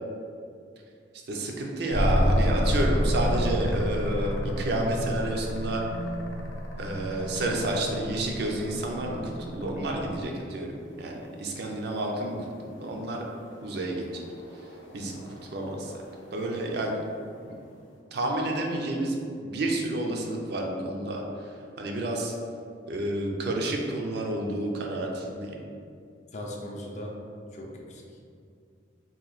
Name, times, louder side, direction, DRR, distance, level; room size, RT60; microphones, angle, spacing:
voice 1, 1.3-5.8 6.8-13.2 13.6-14.2 14.9-16.0 16.3-17.1 17.4-17.6 18.1-22.3 22.9-25.6, right 1 dB, 60° right, 0 dB, 0.5 m, -30 dB
sound 1, 1.9-10.5 12.7-17.2, equal, 85° left, 0.6 m, -30 dB
voice 2, 26.3-27.2 27.5-28.0, left 1 dB, 40° left, -1 dB, 0.5 m, -38 dB
3.0 x 2.6 x 3.9 m, 2.3 s
head